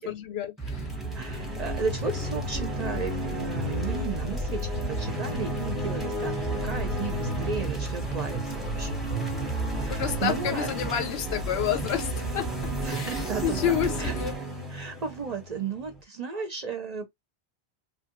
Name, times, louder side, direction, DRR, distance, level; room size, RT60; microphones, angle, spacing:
voice 1, 0.1-0.9 9.9-12.5 12.9-14.3, left 10 dB, 75° left, 0.8 m, -29 dB
sound 1, 0.6-16.0, right 1 dB, ahead, 0.7 m, -31 dB
voice 2, 1.1-4.6 4.9-9.0 9.7-10.7 12.8-14.1 14.7-17.1, right 5 dB, 50° right, 0.5 m, -34 dB
3.0 x 2.2 x 2.9 m
omnidirectional pair, 1.1 m